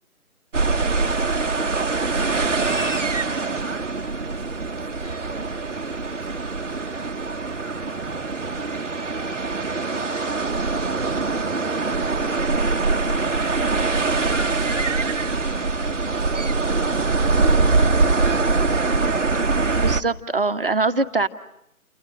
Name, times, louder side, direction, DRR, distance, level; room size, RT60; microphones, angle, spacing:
sound 1, 0.5-20.0, right 3 dB, 55° right, 1.3 m, -23 dB
voice 1, 0.7-7.2 12.4-14.2 14.5-18.7, right 4 dB, 10° right, -6 dB, 2.4 m, -47 dB
voice 2, 19.7-21.3, right 3 dB, 40° right, 9 dB, 1.5 m, -22 dB
29.5 x 21.0 x 9.7 m, 0.80 s
figure-of-eight pair, 155°, 43 cm